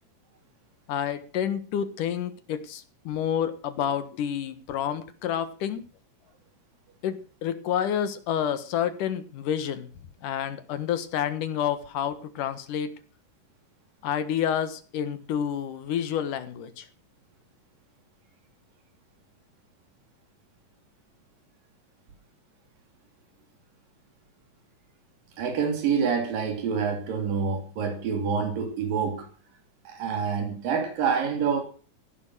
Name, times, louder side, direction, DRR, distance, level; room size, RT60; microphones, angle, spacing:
voice 1, 0.9-5.8 7.0-9.9 10.2-12.9 14.0-16.9, left 9 dB, 70° left, 3.0 m, -29 dB
voice 2, 25.4-29.3 29.9-31.6, right 6 dB, 80° right, 4.6 m, -27 dB
16.0 x 11.0 x 6.2 m
omnidirectional pair, 3.9 m